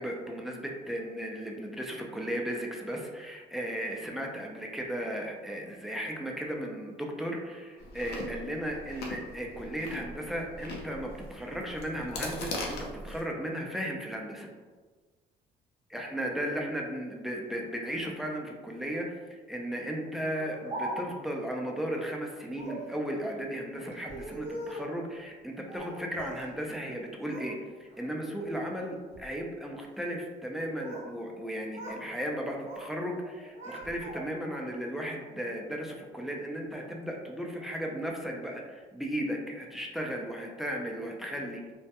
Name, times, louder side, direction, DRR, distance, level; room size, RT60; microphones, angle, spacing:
voice 1, 0.0-14.5 15.9-19.1 19.5-41.6, equal, ahead, 0 dB, 0.3 m, -35 dB
Chewing mastication, 7.8-13.2, left 2 dB, 75° left, 0.5 m, -40 dB
Speech, 20.2-21.3 22.5-22.9 23.9-25.0 25.7-26.5 26.8-27.5 27.9-28.3 29.0-29.3 30.4-31.1 31.4-32.0 32.3-32.9 33.2-34.5, right 1 dB, 40° right, 0.7 m, -41 dB
2.2 x 2.1 x 2.7 m, 1.4 s
cardioid pair, 110°, 17 cm